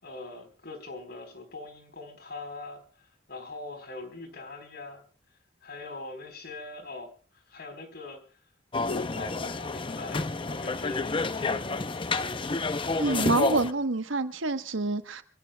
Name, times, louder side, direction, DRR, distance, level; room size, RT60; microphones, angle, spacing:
voice 1, 0.0-5.0 5.6-7.1 7.5-8.2 8.8-11.6, left 3 dB, 55° left, 7 dB, 4.2 m, -41 dB
sound 1, 8.7-13.7, left 3 dB, 25° left, 0.6 m, -29 dB
voice 2, 13.0-15.2, right 2 dB, 85° right, 9 dB, 1.1 m, -27 dB
27.5 x 16.0 x 2.3 m, 0.39 s
head